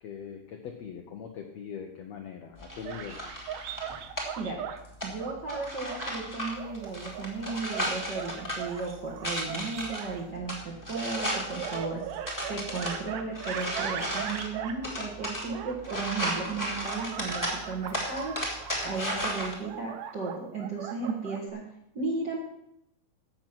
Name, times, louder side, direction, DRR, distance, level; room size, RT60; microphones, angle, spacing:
voice 1, 0.0-3.5, left 7 dB, 80° left, 4 dB, 1.5 m, -41 dB
sound 1, 2.6-19.6, equal, 10° left, 1.0 m, -36 dB
sound 2, 2.8-4.8 5.2-6.1 6.6-10.2 10.9-14.8 15.2-16.4 16.8-21.5, right 9 dB, 80° right, 2.6 m, -39 dB
voice 2, 5.0-12.2 12.5-18.3 18.8-21.6 21.9-22.4, right 4 dB, 45° right, -2 dB, 1.4 m, -35 dB
14.5 x 6.1 x 6.0 m, 0.79 s
omnidirectional pair, 4.3 m